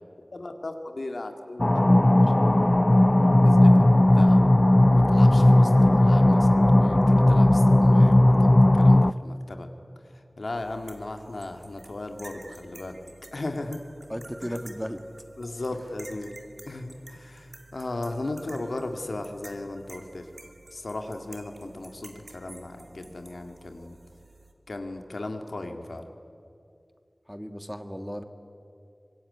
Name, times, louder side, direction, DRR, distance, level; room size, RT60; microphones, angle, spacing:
voice 1, 0.3-2.9 3.2-4.6 4.9-9.7 10.0-13.0 13.3-13.8 14.5-14.6 15.4-16.4 16.7-20.3 20.7-24.0 24.7-26.0, left 2 dB, 85° left, 5 dB, 2.1 m, -37 dB
sound 1, 1.6-9.1, left 1 dB, 35° left, 0.5 m, -17 dB
sound 2, 10.5-24.5, right 2 dB, 75° right, 2.5 m, -50 dB
voice 2, 14.1-15.0 27.3-28.2, equal, ahead, 7 dB, 1.8 m, -35 dB
24.5 x 21.5 x 9.7 m, 2.5 s
wide cardioid pair, 45°, 0 cm